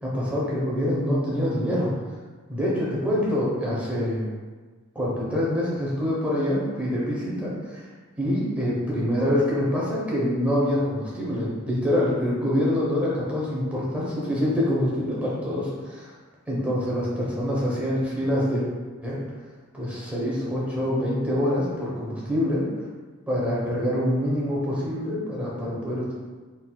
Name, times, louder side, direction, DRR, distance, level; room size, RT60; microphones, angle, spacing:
voice 1, 0.0-1.9 2.5-4.2 4.9-7.9 8.2-16.1 16.5-18.6 19.0-19.2 19.7-22.7 23.3-26.1, left 1 dB, 5° right, -7 dB, 1.1 m, -25 dB
4.0 x 4.0 x 2.3 m, 1.4 s
head